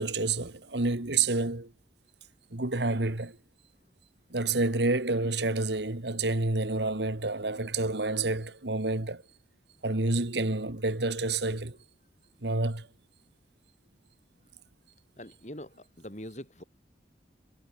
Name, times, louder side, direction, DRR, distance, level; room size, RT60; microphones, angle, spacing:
voice 1, 0.0-1.7 2.5-3.4 4.3-9.2 9.8-11.8 12.4-12.9, right 3 dB, 70° right, 1.9 m, -29 dB
voice 2, 15.2-16.6, left 1 dB, 40° left, 4.9 m, -43 dB
head